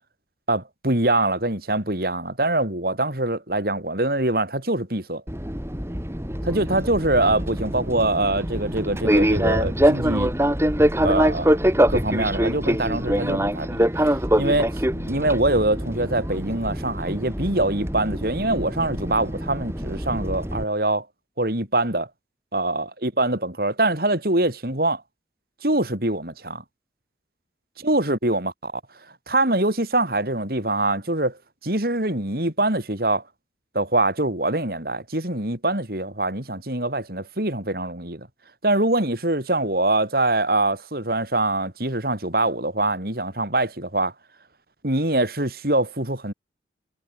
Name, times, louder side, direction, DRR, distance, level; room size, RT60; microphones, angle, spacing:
voice 1, 0.5-5.2 6.4-10.3 11.0-11.6 11.9-13.9 14.4-21.1 21.4-22.1 22.5-25.0 25.6-26.6 27.8-28.8 29.3-33.2 33.7-38.3 38.6-44.1 44.8-46.3, right 2 dB, 55° right, 5.0 m, -24 dB
Fixed-wing aircraft airplane, 5.3-20.6, equal, 15° right, 3.5 m, -24 dB
head